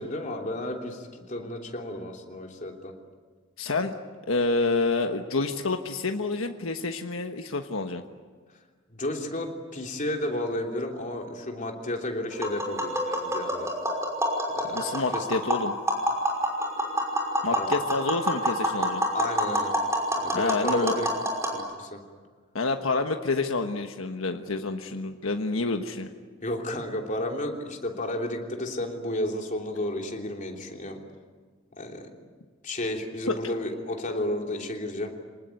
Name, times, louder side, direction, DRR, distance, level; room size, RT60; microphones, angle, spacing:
voice 1, 0.0-2.9 8.9-13.7 14.6-15.3 17.5-17.8 19.1-19.7 20.2-21.1 21.5-22.0 26.4-31.0 31.8-32.2 32.6-35.1, left 1 dB, 40° left, 2 dB, 3.2 m, -32 dB
voice 2, 3.6-3.9 4.3-8.0 14.7-15.7 17.4-19.0 20.3-20.9 22.5-26.1 33.3-33.4, left 3 dB, 85° left, 5 dB, 1.3 m, -28 dB
Tap, 12.3-21.5, equal, 15° right, 5.8 m, -27 dB
27.0 x 19.5 x 9.5 m, 1.5 s
head